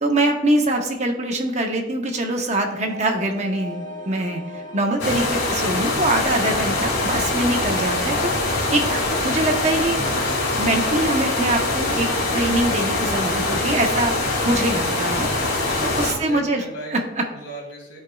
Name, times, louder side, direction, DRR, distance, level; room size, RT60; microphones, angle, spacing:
voice 1, 0.0-10.0 10.6-12.1 12.3-14.1 14.4-15.3 15.8-16.6 16.9-17.0, right 1 dB, 35° right, 3 dB, 0.8 m, -23 dB
sound 1, 2.6-12.7, equal, 25° left, 2.5 m, -38 dB
sound 2, 5.0-16.1, left 2 dB, 85° left, 2.7 m, -23 dB
voice 2, 15.1-18.0, right 1 dB, 70° left, -2 dB, 2.6 m, -39 dB
13.5 x 4.5 x 2.3 m, 0.93 s
head